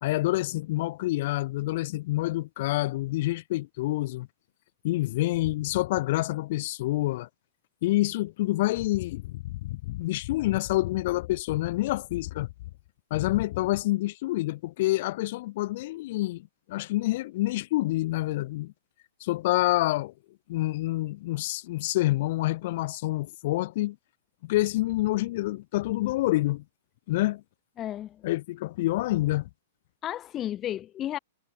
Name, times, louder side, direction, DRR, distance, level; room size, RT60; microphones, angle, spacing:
voice 1, 0.0-4.3 4.8-7.3 7.8-12.5 13.1-18.7 19.2-20.1 20.5-24.0 24.4-26.6 27.1-27.4 28.2-29.5, left 18 dB, 55° left, 2.1 m, -27 dB
voice 2, 27.8-28.2 30.0-31.2, left 12 dB, 30° left, 0.8 m, -33 dB
hypercardioid pair, 115°, 0 cm